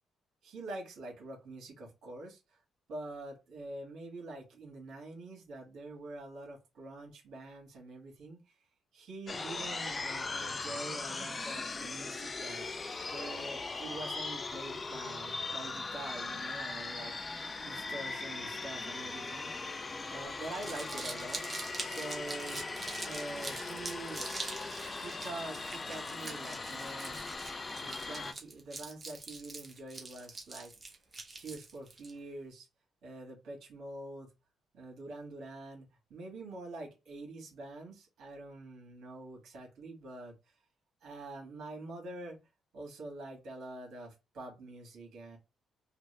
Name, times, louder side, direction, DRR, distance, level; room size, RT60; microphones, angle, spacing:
voice 1, 0.4-2.6 2.9-8.4 8.9-19.7 20.1-22.6 23.0-24.3 24.9-27.2 27.8-30.7 31.4-32.7 33.0-34.3 34.7-40.3 41.0-42.4 42.7-45.4, right 2 dB, 75° right, 0 dB, 1.7 m, -45 dB
sound 1, 9.3-28.3, left 3 dB, 30° left, 0.4 m, -39 dB
Crumpling crinkling, 20.3-32.1, right 3 dB, 30° right, 1.1 m, -44 dB
3.4 x 2.1 x 3.2 m, 0.26 s
cardioid pair, 90°, 0 cm